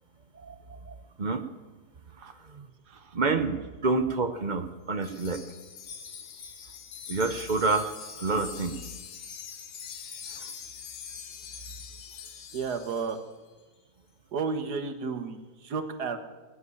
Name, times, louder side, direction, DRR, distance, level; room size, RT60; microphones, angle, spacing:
voice 1, 0.4-1.4 2.4-2.6 3.1-5.4 7.1-7.9 8.2-8.7 10.4-10.5, right 3 dB, 45° right, 9 dB, 0.6 m, -28 dB
Wind chime, 5.0-13.2, left 7 dB, 75° left, 1.8 m, -43 dB
voice 2, 12.5-13.2 14.3-16.2, right 5 dB, 65° right, 8 dB, 1.7 m, -32 dB
18.0 x 7.0 x 9.7 m, 1.3 s
omnidirectional pair, 1.9 m